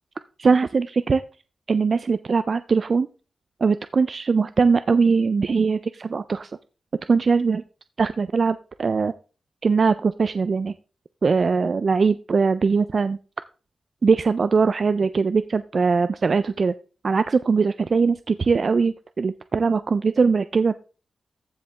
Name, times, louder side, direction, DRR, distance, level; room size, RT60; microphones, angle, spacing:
voice 1, 0.4-1.2 1.7-3.1 3.6-6.5 7.1-7.6 8.0-9.1 9.6-10.7 11.2-13.2 14.0-16.7 17.0-20.7, right 5 dB, 45° right, 13 dB, 0.3 m, -21 dB
14.5 x 5.1 x 3.5 m, 0.36 s
wide cardioid pair, 170°, 0 cm